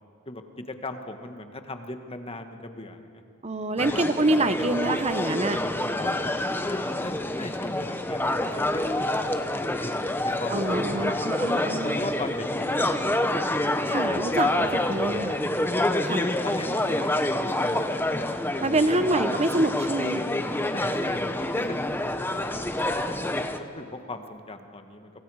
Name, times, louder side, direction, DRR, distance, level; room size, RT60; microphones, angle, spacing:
voice 1, 0.3-3.2 3.9-4.0 6.0-9.9 10.2-11.1 11.8-13.8 15.4-15.7 16.2-18.5 18.9-19.4 20.7-22.6 22.9-25.1, left 2 dB, 25° left, 6 dB, 1.4 m, -39 dB
voice 2, 3.4-5.6 10.5-12.0 13.9-15.4 16.0-16.2 18.6-20.2, right 2 dB, 30° right, 10 dB, 1.0 m, -26 dB
sound 1, 3.8-23.6, left 1 dB, 10° left, 0.9 m, -27 dB
29.0 x 24.5 x 4.9 m, 2.5 s
head